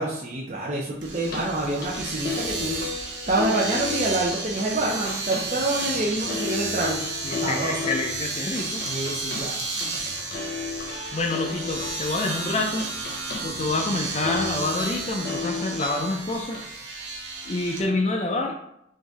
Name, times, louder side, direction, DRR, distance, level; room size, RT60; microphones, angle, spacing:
voice 1, 0.0-2.8 3.3-7.0 7.4-7.8 8.8-9.6, right 2 dB, 40° right, -5 dB, 0.6 m, -27 dB
Domestic sounds home sounds, 1.0-17.8, right 3 dB, 75° right, 1.1 m, -33 dB
sound 1, 1.2-16.6, left 4 dB, 55° left, 0.8 m, -35 dB
voice 2, 7.2-8.8 11.1-12.9 13.4-16.6 17.5-18.6, left 2 dB, 35° left, 3 dB, 0.4 m, -27 dB
3.8 x 3.5 x 3.9 m, 0.77 s
head